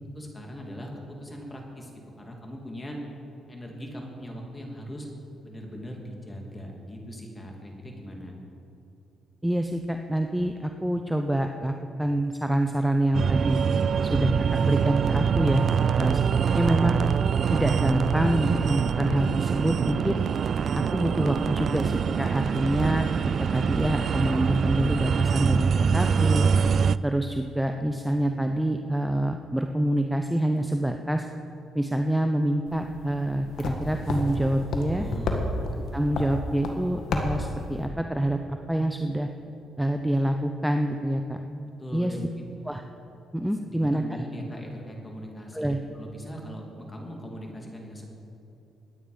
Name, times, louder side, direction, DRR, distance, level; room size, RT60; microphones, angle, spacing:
voice 1, 0.1-0.9 1.2-1.9 2.2-3.0 3.5-5.1 5.4-8.4 34.9-35.5 41.8-42.5 43.6-48.1, equal, 20° left, 0 dB, 2.9 m, -40 dB
voice 2, 9.4-11.7 12.0-13.6 14.0-15.7 16.0-16.2 16.5-17.0 17.5-20.2 20.7-23.1 23.4-26.5 27.0-31.3 31.7-35.1 35.9-39.3 39.8-41.4 41.9-42.1 42.7-42.8 43.3-44.0 45.5-45.8, right 1 dB, 5° right, 5 dB, 0.7 m, -26 dB
sound 1, 13.1-27.0, right 6 dB, 55° right, 0.3 m, -24 dB
sound 2, 32.7-37.9, left 2 dB, 70° left, 1.7 m, -32 dB
21.5 x 9.2 x 5.2 m, 2.9 s
cardioid pair, 90°, 0 cm